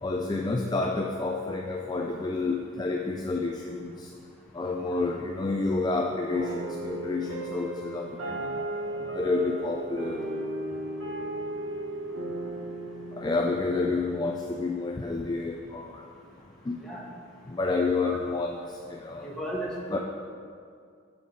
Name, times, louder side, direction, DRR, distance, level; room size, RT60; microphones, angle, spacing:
voice 1, 0.0-4.1 4.5-8.5 9.1-10.2 13.2-16.1 16.7-16.8 17.5-19.3 19.9-20.0, left 3 dB, 20° left, 1 dB, 0.3 m, -29 dB
sound 1, 6.3-14.8, right 1 dB, 80° right, 1.5 m, -36 dB
voice 2, 19.2-20.0, right 1 dB, 5° left, -5 dB, 1.1 m, -34 dB
7.0 x 6.8 x 4.5 m, 2.3 s
head